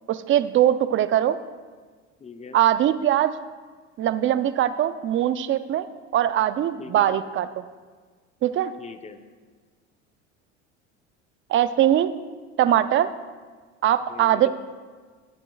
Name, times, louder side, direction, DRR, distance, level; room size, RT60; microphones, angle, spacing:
voice 1, 0.1-1.4 2.5-3.3 4.0-5.9 6.1-7.6 8.4-8.7 11.5-12.1 12.6-13.1 13.8-14.5, right 11 dB, 35° right, 13 dB, 0.5 m, -21 dB
voice 2, 2.2-2.6 6.8-7.1 8.8-9.2 14.1-14.5, left 5 dB, 20° left, 8 dB, 0.8 m, -40 dB
17.5 x 7.7 x 2.3 m, 1.5 s
hypercardioid pair, 85°, 35 cm